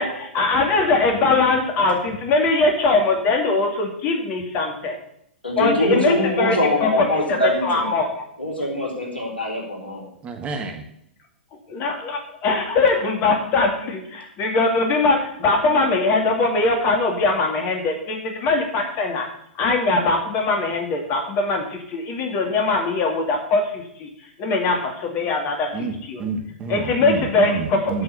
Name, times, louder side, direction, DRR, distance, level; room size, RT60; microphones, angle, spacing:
voice 1, 0.0-5.0 5.6-8.2 11.7-19.3 19.5-24.1 24.4-26.2 26.7-27.9, left 3 dB, 30° left, 3 dB, 2.4 m, -21 dB
voice 2, 5.4-8.0 8.4-10.1, left 1 dB, 80° left, -1 dB, 4.1 m, -23 dB
voice 3, 10.2-10.8 25.7-28.0, right 4 dB, 20° right, 5 dB, 1.4 m, -29 dB
8.9 x 6.9 x 8.4 m, 0.72 s
figure-of-eight pair, 110°, 6 cm